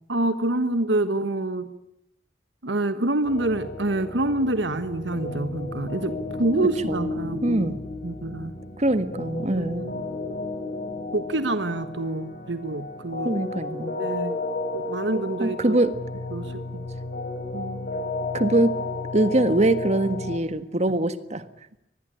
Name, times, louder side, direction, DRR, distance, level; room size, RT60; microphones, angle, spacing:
voice 1, 0.1-1.7 2.6-7.7 8.0-8.5 9.5-9.9 11.1-13.3 14.0-14.4 14.7-15.8 16.3-16.8 17.5-18.0, right 2 dB, 85° right, 11 dB, 1.3 m, -27 dB
sound 1, 3.3-20.4, left 2 dB, 55° left, 4.1 m, -33 dB
voice 2, 6.9-7.8 8.8-9.8 13.2-13.9 15.4-15.9 18.3-18.7 19.1-21.4, right 1 dB, 40° right, 12 dB, 1.6 m, -23 dB
25.0 x 20.5 x 10.0 m, 0.78 s
head